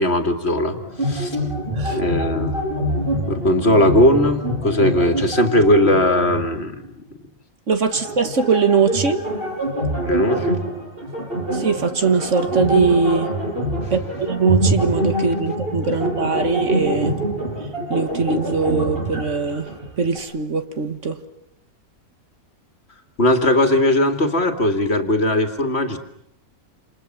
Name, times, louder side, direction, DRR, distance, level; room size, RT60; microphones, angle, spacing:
voice 1, 0.0-1.4 1.9-2.6 3.3-6.8 10.0-10.6 13.8-13.9 23.2-26.0, left 1 dB, 45° left, 7 dB, 2.4 m, -18 dB
sound 1, 0.7-6.5 6.8-6.9 7.9-20.2, right 1 dB, 40° right, 7.8 m, -25 dB
voice 2, 7.7-9.2 11.5-13.3 13.9-17.2 17.9-19.7 20.0-21.2, right 5 dB, 55° right, 9 dB, 1.8 m, -21 dB
28.5 x 27.5 x 7.3 m, 0.76 s
omnidirectional pair, 1.5 m